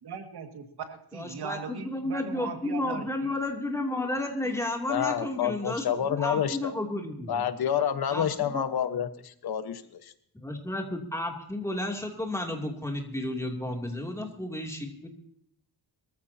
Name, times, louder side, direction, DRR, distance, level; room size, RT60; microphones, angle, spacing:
voice 1, 0.0-3.3, right 6 dB, 85° right, 5 dB, 2.2 m, -39 dB
voice 2, 1.1-7.4 8.1-8.7 10.4-15.1, left 1 dB, 10° left, 1 dB, 2.9 m, -32 dB
voice 3, 4.9-6.7 7.3-10.1, left 9 dB, 75° left, 10 dB, 1.3 m, -29 dB
23.5 x 14.5 x 2.9 m, 0.69 s
wide cardioid pair, 140°, 38 cm